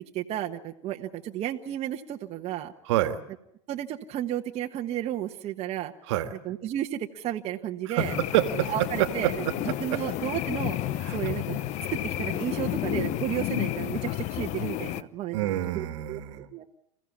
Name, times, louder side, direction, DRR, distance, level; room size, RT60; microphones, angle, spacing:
voice 1, 0.1-2.7 3.7-5.9 6.4-8.1 8.7-9.3 9.8-10.8 11.1-11.6 12.0-16.2 16.5-16.8, right 12 dB, 40° right, 3 dB, 1.3 m, -33 dB
voice 2, 2.8-3.2 6.1-6.4 7.9-10.0 11.0-11.2 15.3-16.5, right 12 dB, 70° right, 9 dB, 1.8 m, -28 dB
sound 1, 8.0-15.0, left 13 dB, 45° left, 0.9 m, -31 dB
28.5 x 15.5 x 8.6 m, 0.77 s
hypercardioid pair, 100°, 16 cm